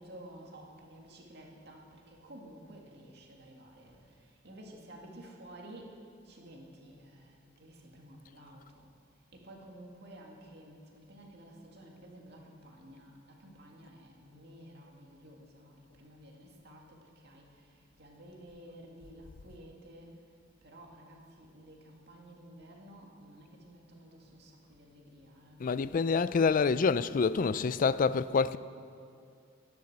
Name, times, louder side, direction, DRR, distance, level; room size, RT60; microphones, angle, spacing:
voice 1, 0.0-6.0 6.3-8.9 9.3-20.1 20.6-25.6, right 1 dB, 60° right, 2.2 m, -52 dB
voice 2, 25.6-28.6, left 5 dB, 45° left, 0.4 m, -27 dB
11.5 x 10.5 x 7.9 m
head